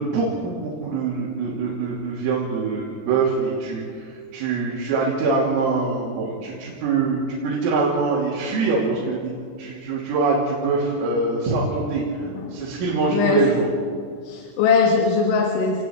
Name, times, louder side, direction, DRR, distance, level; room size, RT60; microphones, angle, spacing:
voice 1, 0.0-9.3 9.6-13.7, right 4 dB, 90° right, -5 dB, 5.5 m, -24 dB
voice 2, 12.2-12.6 13.1-13.5 14.2-15.8, left 5 dB, 75° left, 1 dB, 3.9 m, -21 dB
28.5 x 20.5 x 4.7 m, 2.1 s
omnidirectional pair, 5.7 m